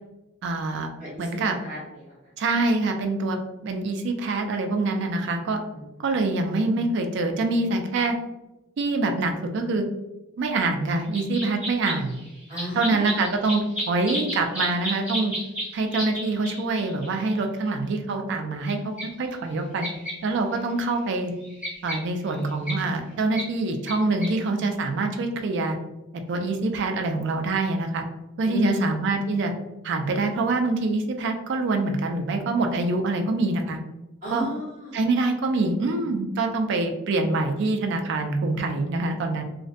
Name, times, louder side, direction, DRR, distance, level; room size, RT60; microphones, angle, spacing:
voice 1, 0.4-0.9 1.2-1.5 2.4-3.4 3.6-5.6 6.0-8.2 8.8-9.8 10.4-12.2 12.7-15.3 15.7-19.9 20.2-21.3 21.8-25.8 26.3-28.0 28.4-29.5 29.8-33.8 34.3-34.5 34.9-39.4, right 3 dB, 60° right, 5 dB, 0.3 m, -25 dB
voice 2, 1.6-2.1 6.1-6.3 12.5-13.1 28.4-28.9 34.2-35.0, equal, 40° right, -7 dB, 1.0 m, -34 dB
sound 1, 11.1-17.4 18.7-18.8 19.0-19.1 19.8-20.1 20.6-20.7 20.9-22.7 23.4-23.5 23.9-24.0 24.2-24.3, equal, 5° right, 0.7 m, -32 dB
2.5 x 2.1 x 2.4 m, 1.0 s
head